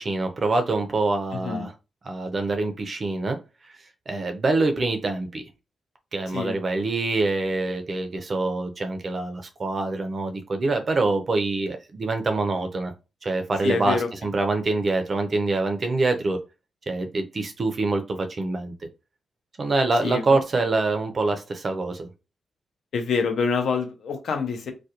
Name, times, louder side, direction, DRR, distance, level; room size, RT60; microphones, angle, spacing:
voice 1, 0.0-1.7 2.0-3.4 4.1-5.4 6.1-12.9 13.2-16.4 16.9-18.7 19.6-22.1, right 3 dB, 35° right, 0.4 m, -25 dB
voice 2, 1.3-1.7 6.3-6.6 13.6-14.1 20.0-20.2 22.9-24.7, left 5 dB, 70° left, 0.5 m, -26 dB
2.4 x 2.1 x 2.8 m
wide cardioid pair, 150°, 0 cm